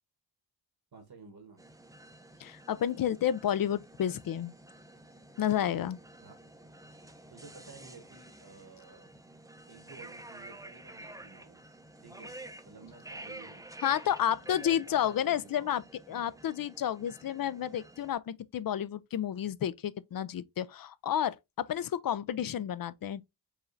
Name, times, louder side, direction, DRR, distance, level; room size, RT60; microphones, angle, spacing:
voice 1, 0.9-1.6 6.2-6.4 7.3-9.1 9.7-11.6 12.0-14.0 14.6-15.8 16.1-16.3 22.5-22.7, right 4 dB, 55° right, 1.3 m, -53 dB
sound 1, 1.6-18.1, right 1 dB, 10° right, 0.6 m, -50 dB
voice 2, 2.4-4.5 5.4-6.0 13.8-15.8 16.1-23.3, left 10 dB, 50° left, 0.5 m, -31 dB
4.8 x 3.1 x 2.5 m
cardioid pair, 70°, 46 cm